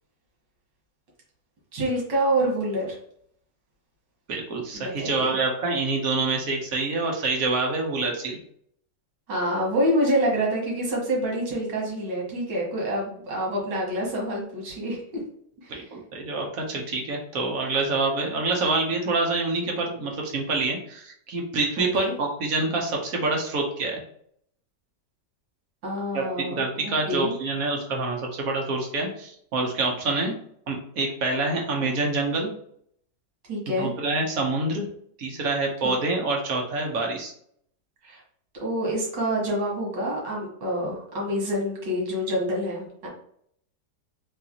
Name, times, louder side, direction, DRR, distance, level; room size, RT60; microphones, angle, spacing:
voice 1, 1.7-3.0 4.7-5.3 9.3-15.2 15.6-15.8 21.8-22.1 25.8-27.3 33.5-33.9 35.8-35.9 38.0-38.2 38.6-43.1, equal, 90° right, -2 dB, 2.0 m, -27 dB
voice 2, 4.3-8.4 15.7-24.0 26.1-32.5 33.8-34.8 35.2-37.3, right 3 dB, 60° right, 0 dB, 1.1 m, -26 dB
4.0 x 2.6 x 2.8 m, 0.66 s
omnidirectional pair, 1.9 m